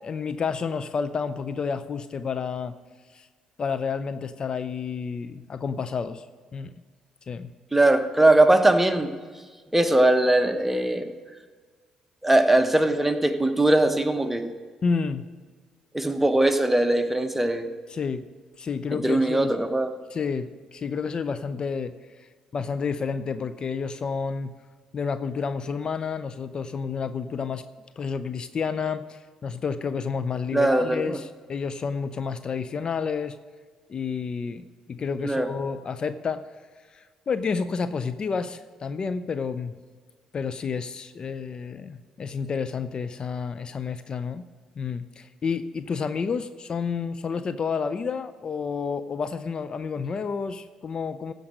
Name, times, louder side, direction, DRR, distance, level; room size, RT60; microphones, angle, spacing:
voice 1, 0.0-2.7 3.1-3.3 3.6-6.3 6.5-6.7 7.3-7.5 14.8-15.2 17.9-18.2 18.6-19.5 20.1-21.9 22.2-24.5 24.9-27.6 28.0-33.4 33.9-36.4 36.9-39.7 40.3-44.4 44.8-51.3, left 5 dB, 45° left, 12 dB, 0.5 m, -30 dB
voice 2, 7.7-9.1 9.7-11.1 12.2-14.5 15.9-17.7 18.9-19.9 30.5-31.2 35.2-35.5, right 1 dB, 10° right, 7 dB, 1.0 m, -21 dB
15.5 x 5.3 x 6.3 m, 1.5 s
hypercardioid pair, 50°, 2 cm